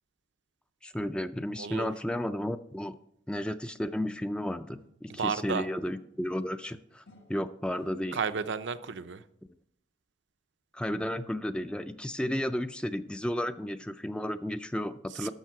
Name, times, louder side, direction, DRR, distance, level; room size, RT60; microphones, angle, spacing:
voice 1, 0.8-3.0 3.3-7.0 7.3-8.2 10.7-15.3, left 1 dB, 5° left, 0.3 m, -33 dB
voice 2, 1.6-1.9 5.2-5.7 8.1-9.2 15.1-15.3, right 5 dB, 80° right, 0.6 m, -32 dB
sound 1, 4.0-5.5 5.8-8.4, left 2 dB, 80° left, 1.4 m, -60 dB
12.0 x 6.4 x 4.7 m
head